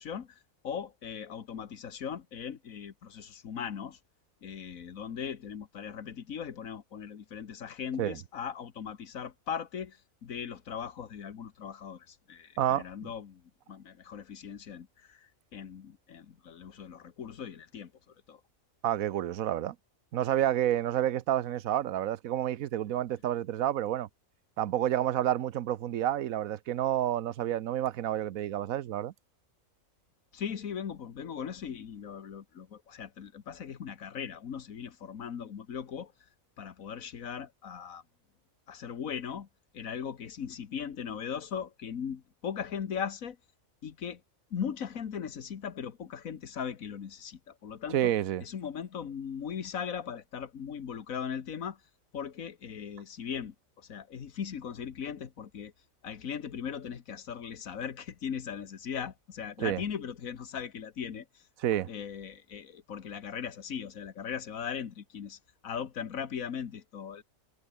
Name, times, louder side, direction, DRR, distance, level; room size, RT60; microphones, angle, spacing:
voice 1, 0.0-4.0 4.4-18.4 30.3-36.1 36.6-38.0 38.7-39.5 39.7-43.4 43.8-44.2 44.5-48.1 48.4-51.8 52.1-55.7 56.0-61.5 61.9-67.2, left 7 dB, 80° left, 1.7 m, -39 dB
voice 2, 18.8-19.7 20.1-24.1 24.6-29.1 47.9-48.4 59.6-59.8 61.6-61.9, right 11 dB, 85° right, 1.2 m, -29 dB
omnidirectional pair, 1.4 m